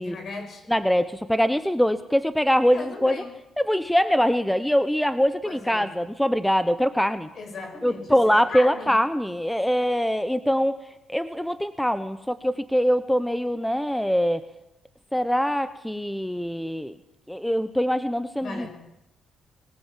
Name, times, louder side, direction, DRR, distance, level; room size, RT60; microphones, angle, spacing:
voice 1, 0.0-0.7 2.7-3.3 5.4-5.9 7.3-8.2 8.5-8.9 18.4-18.7, left 3 dB, 55° left, 5 dB, 7.0 m, -36 dB
voice 2, 0.7-3.2 3.6-7.3 7.8-10.8 11.1-14.4 15.1-17.0 17.3-18.7, equal, 5° left, 12 dB, 1.0 m, -23 dB
24.0 x 19.5 x 7.6 m, 0.90 s
cardioid pair, 90°, 0 cm